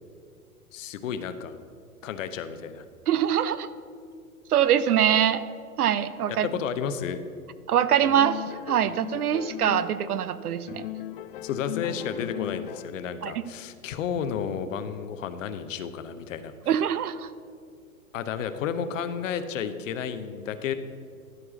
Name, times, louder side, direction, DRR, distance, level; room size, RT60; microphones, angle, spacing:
voice 1, 0.7-1.6 2.0-2.8 6.3-7.2 11.4-16.5 18.1-20.7, left 7 dB, 55° left, 11 dB, 0.8 m, -32 dB
voice 2, 3.1-3.7 4.5-5.4 5.8-6.5 7.7-10.8 13.2-13.3 16.7-17.3, right 9 dB, 75° right, 14 dB, 0.6 m, -23 dB
sound 1, 8.0-10.3 10.7-13.1, left 13 dB, 40° left, 0.4 m, -37 dB
12.5 x 4.7 x 6.1 m, 2.2 s
figure-of-eight pair, 105°, 46 cm